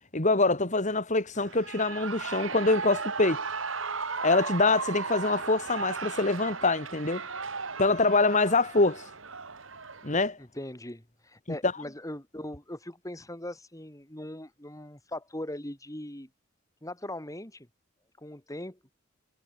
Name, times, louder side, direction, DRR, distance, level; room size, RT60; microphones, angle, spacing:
voice 1, 0.1-3.4 4.2-7.2 7.8-9.1 10.0-10.4 11.6-11.7, left 3 dB, 40° left, 3.1 m, -25 dB
Shout / Cheering, 1.3-10.3, right 4 dB, 80° right, 3.3 m, -36 dB
voice 2, 10.4-16.3 16.8-17.7 18.2-18.8, left 1 dB, 15° left, 4.2 m, -40 dB
head